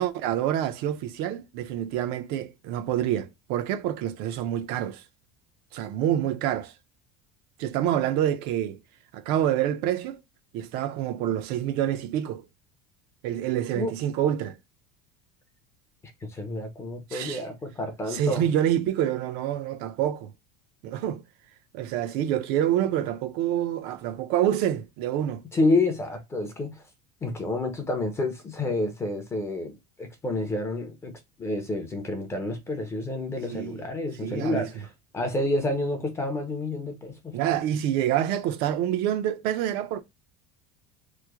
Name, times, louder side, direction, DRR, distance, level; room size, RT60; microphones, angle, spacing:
voice 1, 0.0-5.0 5.7-6.7 7.6-8.8 9.1-10.2 10.5-12.4 13.2-14.6 17.1-17.4 18.1-20.3 20.8-21.2 21.7-25.4 33.5-33.8 34.2-34.7 37.3-40.0, right 11 dB, 50° right, 0.5 m, -27 dB
voice 2, 16.3-18.4 25.5-26.7 27.2-31.1 31.4-34.9 35.1-37.4, left 2 dB, 15° left, 0.6 m, -29 dB
3.1 x 2.0 x 3.4 m
cardioid pair, 170°, 20 cm